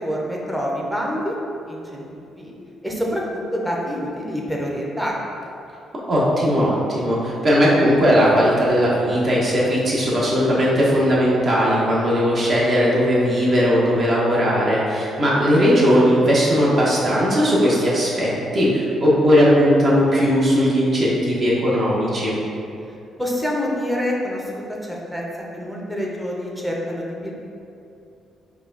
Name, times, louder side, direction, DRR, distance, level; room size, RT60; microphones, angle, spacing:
voice 1, 0.0-1.3 1.7-2.0 2.4-2.5 2.8-5.1 23.2-25.2 25.5-27.3, equal, 5° right, -3 dB, 0.7 m, -26 dB
voice 2, 6.1-22.4, equal, 45° right, -6 dB, 1.1 m, -18 dB
4.6 x 2.4 x 3.9 m, 2.7 s
cardioid pair, 90°, 0 cm